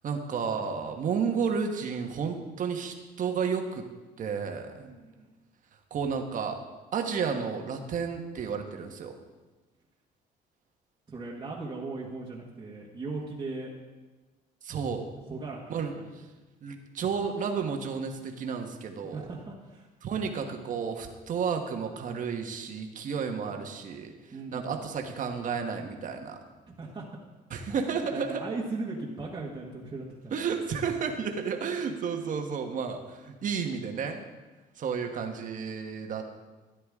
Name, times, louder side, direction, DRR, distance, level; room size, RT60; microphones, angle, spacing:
voice 1, 0.0-3.8 4.2-4.9 5.9-6.6 6.9-9.1 14.6-15.1 15.7-16.2 16.6-19.2 20.0-24.1 24.5-26.4 27.5-28.4 30.3-34.2 34.8-36.2, right 6 dB, 50° right, 4 dB, 1.4 m, -32 dB
voice 2, 4.8-5.3 11.1-13.7 15.3-15.6 15.9-16.1 19.1-19.9 24.3-24.7 26.8-27.0 28.1-30.4, right 3 dB, 25° right, -4 dB, 1.6 m, -38 dB
13.5 x 10.0 x 3.7 m, 1.2 s
cardioid pair, 110°, 17 cm